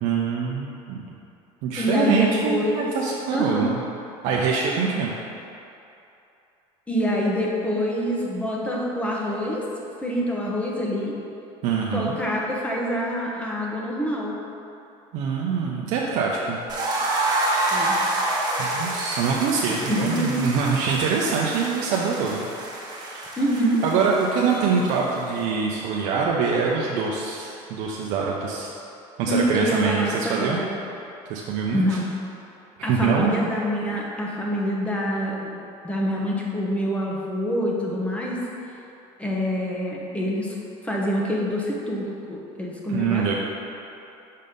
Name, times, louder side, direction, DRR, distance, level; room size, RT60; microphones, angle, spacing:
voice 1, 0.0-1.1 1.6-3.8 4.2-5.1 11.6-12.2 15.1-16.6 18.6-22.5 22.8-23.4 23.8-28.7 29.2-30.6 31.3-32.0 32.8-33.3 42.9-43.3, right 5 dB, 70° right, -3 dB, 0.7 m, -24 dB
voice 2, 1.8-2.9 3.3-3.7 6.9-9.6 10.0-11.2 11.9-14.4 17.7-18.0 19.9-20.5 23.4-23.8 29.3-30.7 31.7-32.1 32.8-38.4 39.2-40.5 40.8-43.3, equal, 10° left, -3 dB, 1.1 m, -26 dB
sound 1, 16.7-25.4, right 2 dB, 35° right, 1.4 m, -28 dB
6.5 x 4.1 x 5.2 m, 2.8 s
cardioid pair, 130°, 13 cm